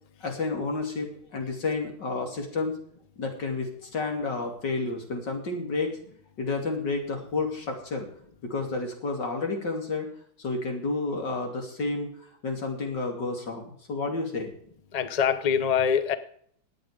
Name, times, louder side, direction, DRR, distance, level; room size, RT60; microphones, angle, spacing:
voice 1, 0.2-2.8 3.2-6.0 6.4-8.1 8.4-10.1 10.4-12.1 12.4-14.5, left 3 dB, 60° left, 3 dB, 3.4 m, -30 dB
voice 2, 14.9-16.1, left 7 dB, 80° left, 13 dB, 0.3 m, -24 dB
18.5 x 8.8 x 5.0 m, 0.62 s
omnidirectional pair, 2.2 m